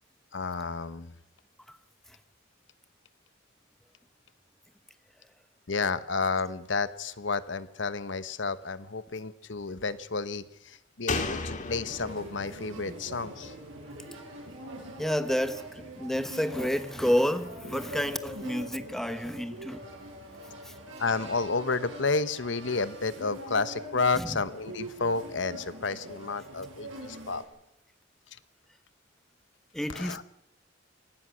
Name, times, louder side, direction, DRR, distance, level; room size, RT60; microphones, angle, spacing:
voice 1, 0.3-1.1 5.7-13.5 21.0-27.4 29.9-30.2, left 4 dB, 65° left, 1.1 m, -31 dB
Slam, 11.1-14.6 14.9-15.0, left 3 dB, 40° left, 2.1 m, -36 dB
sound 1, 11.9-27.4, right 1 dB, 90° right, 7.0 m, -43 dB
voice 2, 15.0-19.9 20.6-20.7 24.1-24.3 29.7-30.2, equal, ahead, 1.0 m, -30 dB
23.5 x 19.0 x 6.3 m
head